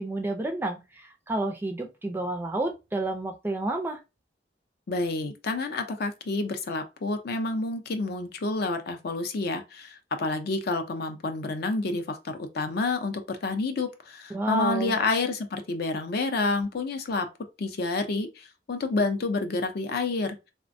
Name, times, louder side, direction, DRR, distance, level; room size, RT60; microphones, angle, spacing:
voice 1, 0.0-4.0 14.3-15.0, right 2 dB, 10° right, 0.4 m, -30 dB
voice 2, 4.9-17.3 17.6-20.4, left 3 dB, 55° left, 0.5 m, -29 dB
3.3 x 2.1 x 2.5 m
head